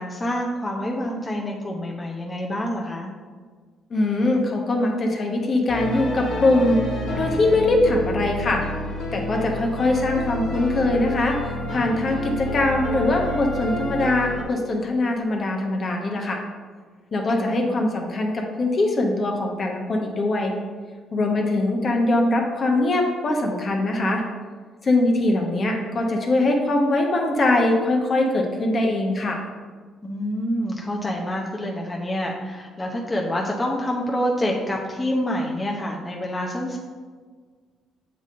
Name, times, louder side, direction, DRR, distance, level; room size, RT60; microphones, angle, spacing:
voice 1, 0.0-3.1 17.3-17.6 30.0-36.8, equal, 20° left, -1 dB, 0.8 m, -27 dB
voice 2, 3.9-6.8 7.2-8.6 9.1-16.4 17.1-20.5 21.1-24.2 24.8-29.4, left 2 dB, 45° left, 2 dB, 1.0 m, -22 dB
sound 1, 5.7-14.4, left 1 dB, 75° left, 1.5 m, -29 dB
7.2 x 3.7 x 3.7 m, 1.5 s
cardioid pair, 80°, 0 cm